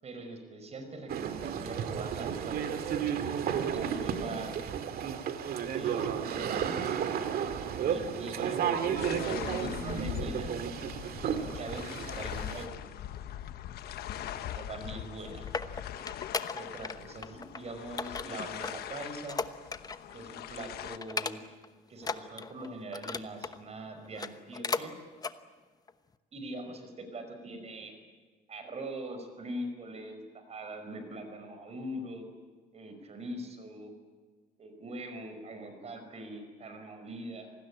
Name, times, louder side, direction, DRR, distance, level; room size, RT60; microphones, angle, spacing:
voice 1, 0.0-2.9 3.7-4.6 5.7-7.0 7.6-8.7 9.0-10.6 11.3-12.8 14.2-15.5 16.5-19.4 20.1-21.4 21.9-24.9 26.3-27.9 28.5-32.3 32.7-33.9 34.6-37.5, right 1 dB, 40° right, 7 dB, 5.4 m, -42 dB
sound 1, 1.1-12.7, right 8 dB, 65° right, 2.3 m, -33 dB
sound 2, 9.0-21.0, left 11 dB, 70° left, 1.3 m, -41 dB
sound 3, 15.0-17.0 17.2-17.6 18.0-20.1 20.4-20.6 21.0-21.7 22.0-23.6 24.0-24.9 25.2-25.4 25.9-26.0, left 4 dB, 20° left, 1.0 m, -36 dB
27.5 x 19.5 x 8.6 m, 1.5 s
cardioid pair, 110°, 17 cm